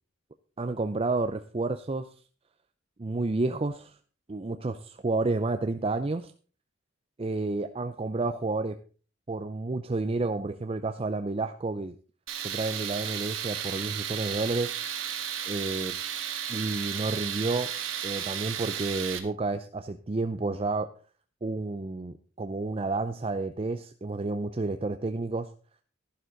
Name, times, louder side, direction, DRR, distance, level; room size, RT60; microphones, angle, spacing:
voice 1, 0.6-2.1 3.0-3.9 4.3-6.3 7.2-8.7 9.3-11.9 12.4-14.7 15.5-15.9 16.5-17.7 18.0-20.9 21.4-25.5, right 3 dB, 30° right, 8 dB, 0.5 m, -30 dB
Tools, 12.3-19.2, right 9 dB, 75° right, 1.5 m, -34 dB
11.5 x 11.0 x 3.9 m, 0.38 s
head